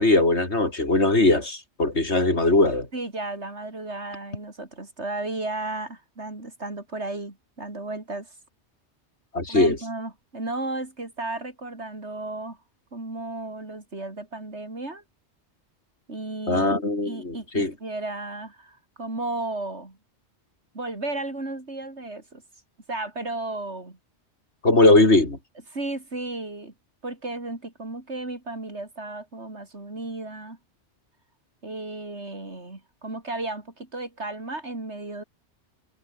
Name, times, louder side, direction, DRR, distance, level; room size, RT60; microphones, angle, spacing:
voice 1, 0.0-2.9 9.3-9.8 16.5-17.7 24.6-25.4, left 2 dB, 80° left, 4.8 m, -20 dB
voice 2, 2.9-8.3 9.5-12.6 12.9-15.0 16.1-16.7 17.0-20.0 20.7-22.4 22.9-24.0 25.7-26.7 27.0-30.6 31.6-35.2, right 2 dB, 80° right, 4.8 m, -34 dB
omnidirectional pair, 1.1 m